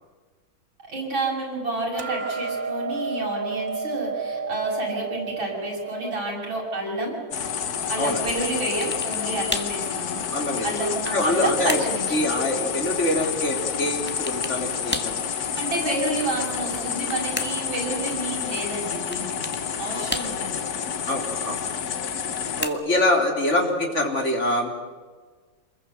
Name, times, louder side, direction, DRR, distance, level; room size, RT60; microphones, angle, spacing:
voice 1, 0.9-7.2 7.9-10.3 10.6-12.3 15.3-19.5 19.8-20.6, right 2 dB, 80° right, -2 dB, 7.4 m, -29 dB
Hammer, 2.0-8.2, right 5 dB, 45° right, 1.1 m, -32 dB
sound 1, 7.3-22.7, left 7 dB, 55° left, 1.6 m, -29 dB
sound 2, 8.8-9.3 9.5-9.8 10.4-11.3 11.7-12.0 14.1-14.6 14.9-15.2 16.6-17.7 19.1-19.7 20.1-20.6 22.1-23.1, left 1 dB, 5° left, 1.4 m, -33 dB
voice 2, 10.3-11.8 12.1-15.2 19.9-20.0 21.1-21.6 22.6-24.7, left 1 dB, 35° left, 2 dB, 4.1 m, -25 dB
27.5 x 21.5 x 7.9 m, 1.4 s
omnidirectional pair, 2.2 m